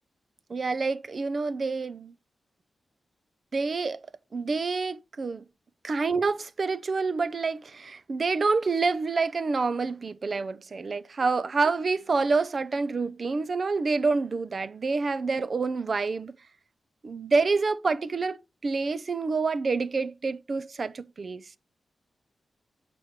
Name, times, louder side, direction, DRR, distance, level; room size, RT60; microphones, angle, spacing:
voice 1, 0.5-2.1 3.5-4.0 4.3-5.4 5.8-16.4 17.0-18.4 18.6-21.4, right 4 dB, 40° right, 0.5 m, -27 dB
8.0 x 6.1 x 4.3 m
wide cardioid pair, 145°, 0 cm